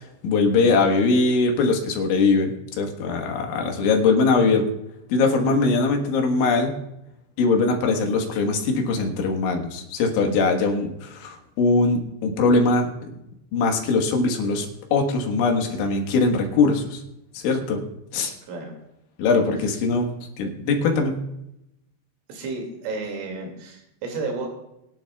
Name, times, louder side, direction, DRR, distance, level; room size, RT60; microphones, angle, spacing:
voice 1, 0.0-4.7 5.1-6.7 7.4-12.9 13.5-17.0 17.3-17.8 18.1-18.3 19.2-20.1 20.4-21.2, left 3 dB, 75° left, 3 dB, 3.9 m, -21 dB
voice 2, 22.3-24.5, right 3 dB, 90° right, 2 dB, 4.8 m, -32 dB
24.0 x 10.5 x 2.4 m, 0.84 s
omnidirectional pair, 5.5 m